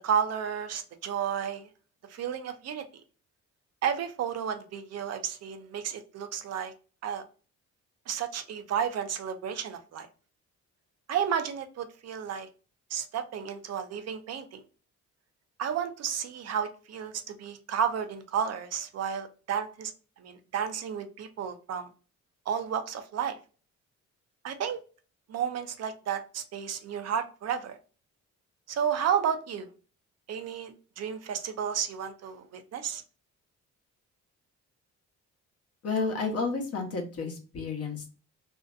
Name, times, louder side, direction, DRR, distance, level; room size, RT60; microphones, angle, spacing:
voice 1, 0.0-1.7 2.1-2.8 3.8-6.7 7.0-7.2 8.1-10.1 11.1-12.5 12.9-14.6 15.6-19.9 20.2-21.9 22.5-23.4 24.4-24.8 25.3-27.8 28.7-29.7 30.3-33.0, right 8 dB, 55° right, 8 dB, 0.5 m, -32 dB
voice 2, 35.8-38.1, left 4 dB, 55° left, 2 dB, 0.9 m, -31 dB
2.5 x 2.1 x 2.4 m, 0.36 s
cardioid pair, 90°, 30 cm